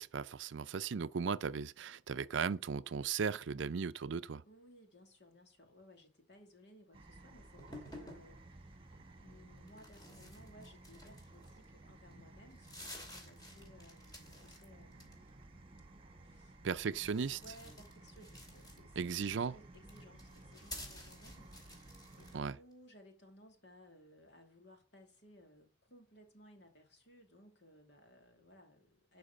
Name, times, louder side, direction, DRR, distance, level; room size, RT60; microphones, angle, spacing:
voice 1, 0.0-4.4 16.6-17.4 19.0-19.5 22.3-22.6, right 6 dB, 70° right, 0.5 m, -36 dB
voice 2, 4.5-15.8 16.2-16.6 17.2-29.2, left 1 dB, 60° left, 2.6 m, -61 dB
sound 1, 6.9-22.4, right 2 dB, 30° right, 1.3 m, -56 dB
sound 2, 7.6-8.3 9.7-11.6 12.1-12.2 12.5-14.6 14.9-15.4 17.0-19.1 19.7-22.4, left 1 dB, 20° left, 2.5 m, -52 dB
11.5 x 4.8 x 7.1 m
head